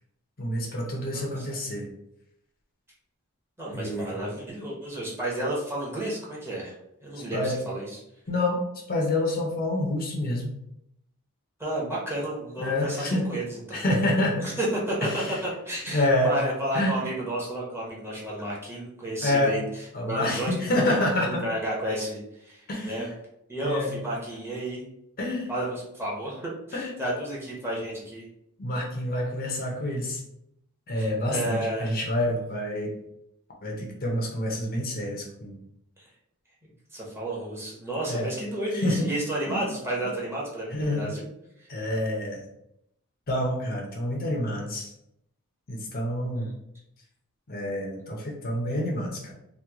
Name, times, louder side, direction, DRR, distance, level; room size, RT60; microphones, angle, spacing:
voice 1, 0.4-1.9 3.7-4.1 7.2-7.6 8.3-8.6 8.9-10.5 12.6-13.3 13.7-14.5 15.0-15.3 15.9-16.3 16.7-16.9 19.2-19.5 19.9-21.4 22.7-23.1 23.6-23.9 25.2-25.5 26.7-26.9 28.6-30.2 30.9-32.9 33.6-35.6 38.1-38.3 38.7-39.1 39.5-39.6 40.7-41.0 41.7-42.4 43.3-44.9 45.7-46.5 47.5-49.3, left 1 dB, 40° left, -1 dB, 0.7 m, -27 dB
voice 2, 1.1-1.5 3.6-6.7 7.0-8.0 11.6-13.8 14.4-20.5 20.8-21.0 21.3-23.1 23.5-24.8 25.5-28.3 31.0-32.0 36.0-36.1 36.9-41.2 41.6-41.7 46.4-46.5, right 1 dB, 10° right, -5 dB, 0.9 m, -32 dB
3.0 x 2.2 x 3.4 m, 0.80 s
head